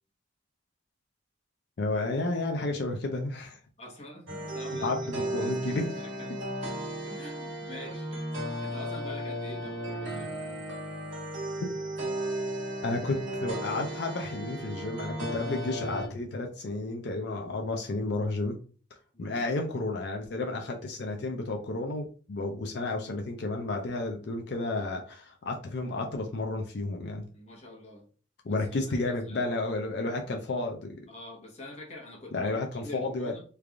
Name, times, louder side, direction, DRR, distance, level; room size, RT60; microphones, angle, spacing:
voice 1, 1.8-3.6 4.8-6.0 12.8-18.6 19.2-27.3 28.4-31.1 32.3-33.4, left 2 dB, 60° left, 2 dB, 0.4 m, -32 dB
voice 2, 3.8-10.3 19.1-19.4 27.3-28.1 28.5-29.7 31.1-33.4, left 1 dB, 35° left, -1 dB, 1.1 m, -46 dB
sound 1, 4.3-16.1, right 1 dB, 75° right, 1.4 m, -35 dB
3.3 x 2.4 x 3.4 m, 0.41 s
head